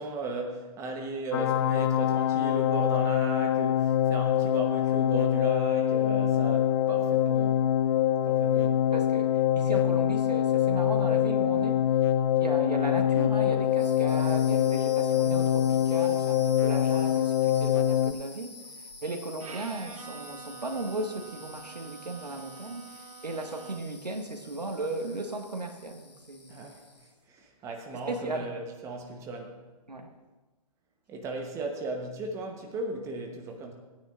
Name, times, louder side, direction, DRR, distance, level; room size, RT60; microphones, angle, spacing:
voice 1, 0.0-7.6 8.2-8.9 26.5-29.6 31.1-33.7, right 2 dB, 15° right, 3 dB, 1.1 m, -36 dB
sound 1, 1.3-18.1, left 10 dB, 40° left, 0.4 m, -24 dB
voice 2, 8.9-11.8 12.4-18.6 19.0-26.7 27.9-28.5 29.9-30.1, right 2 dB, 90° right, 4 dB, 1.7 m, -36 dB
sound 2, 13.7-27.2, left 3 dB, 90° left, 2.0 m, -48 dB
Bowed string instrument, 19.4-24.1, right 7 dB, 60° right, 0.9 m, -47 dB
18.0 x 9.3 x 2.5 m, 1.2 s
figure-of-eight pair, 140°, 20 cm